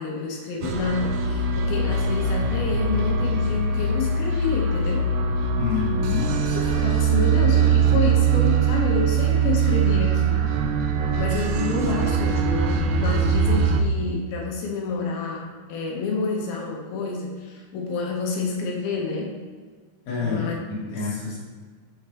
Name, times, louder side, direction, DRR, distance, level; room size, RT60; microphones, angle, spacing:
voice 1, 0.0-5.1 6.5-10.7 11.1-19.4 20.2-20.6, left 4 dB, 80° left, -1 dB, 2.2 m, -29 dB
sound 1, 0.6-13.8, right 5 dB, 85° right, 2.6 m, -22 dB
voice 2, 5.6-6.3 20.1-21.4, left 5 dB, 60° left, -5 dB, 3.2 m, -28 dB
6.2 x 5.8 x 3.3 m, 1.5 s
omnidirectional pair, 5.3 m